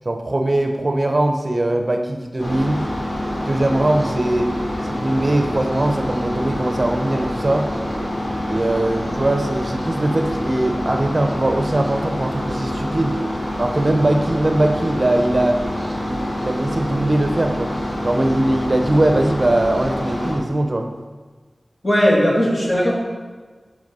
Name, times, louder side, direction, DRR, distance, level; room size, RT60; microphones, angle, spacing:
voice 1, 0.0-2.9 3.4-4.5 4.8-7.7 8.4-13.2 13.6-15.6 16.0-17.7 18.0-20.9, right 1 dB, 40° right, 4 dB, 0.7 m, -20 dB
sound 1, 2.4-20.3, left 1 dB, 80° left, 2.5 m, -26 dB
voice 2, 21.8-22.9, equal, 35° left, -4 dB, 2.4 m, -17 dB
8.2 x 5.3 x 5.3 m, 1.4 s
wide cardioid pair, 60°, 0 cm